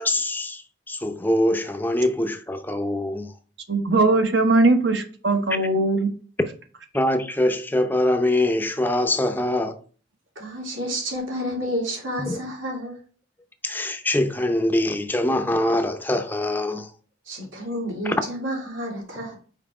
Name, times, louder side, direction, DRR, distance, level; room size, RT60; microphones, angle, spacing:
voice 1, 0.0-3.3 6.9-9.8 12.2-12.4 13.6-16.9 18.0-18.2, left 1 dB, 10° left, 0.6 m, -23 dB
voice 2, 3.7-6.1, right 2 dB, 65° right, 1.1 m, -20 dB
voice 3, 10.3-13.0 17.2-19.4, equal, 80° right, 2.9 m, -30 dB
5.7 x 4.5 x 4.8 m
head